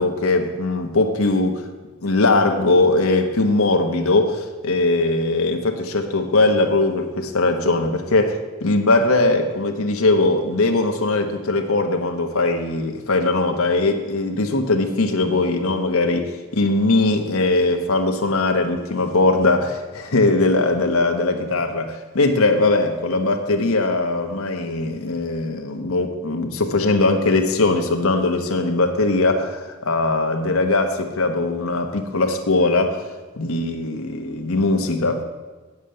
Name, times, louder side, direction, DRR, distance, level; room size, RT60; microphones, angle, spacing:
voice 1, 0.0-1.6 2.0-33.1 33.4-35.2, left 2 dB, 75° left, 4 dB, 1.1 m, -20 dB
8.4 x 7.4 x 7.7 m, 1.3 s
head